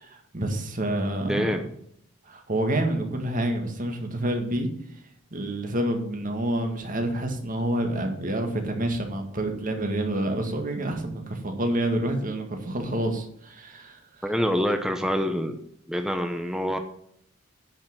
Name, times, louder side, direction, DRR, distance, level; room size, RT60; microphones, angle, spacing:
voice 1, 0.0-1.5 2.3-4.7 5.3-14.2, right 1 dB, 40° right, 4 dB, 2.0 m, -28 dB
voice 2, 1.2-1.6 14.2-15.6 15.9-16.8, equal, 5° right, 5 dB, 0.8 m, -26 dB
10.5 x 5.7 x 7.4 m, 0.69 s
head